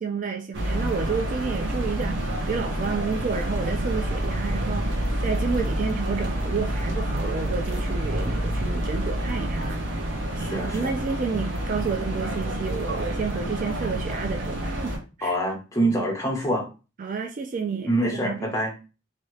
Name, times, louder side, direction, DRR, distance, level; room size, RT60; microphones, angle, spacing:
voice 1, 0.0-10.0 10.4-15.4 15.8-16.1 17.0-18.5, right 5 dB, 40° right, 0.3 m, -30 dB
sound 1, 0.5-15.0, right 1 dB, 65° right, 0.8 m, -28 dB
voice 2, 10.4-10.9 15.2-16.6 17.9-18.9, right 1 dB, 15° left, 1.0 m, -26 dB
2.8 x 2.7 x 3.1 m
head